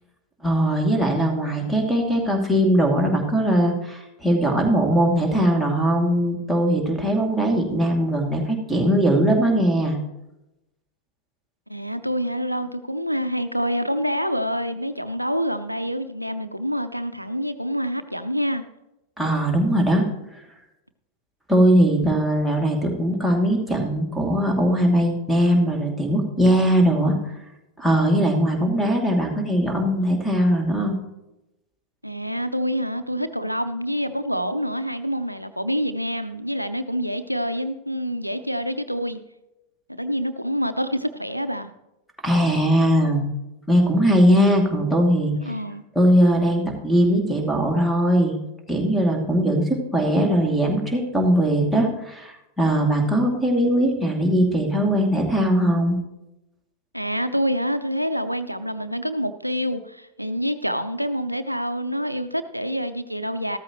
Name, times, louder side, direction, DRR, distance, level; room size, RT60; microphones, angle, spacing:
voice 1, 0.4-10.0 19.2-20.1 21.5-27.2 27.8-31.0 42.2-43.3 43.7-45.5 46.0-48.4 48.7-56.0, equal, ahead, 2 dB, 2.5 m, -20 dB
voice 2, 11.7-18.6 32.0-39.2 39.9-41.7 45.5-45.8 56.9-63.6, equal, 90° right, 11 dB, 0.5 m, -27 dB
14.0 x 13.0 x 3.1 m, 0.91 s
figure-of-eight pair, 90°, 0 cm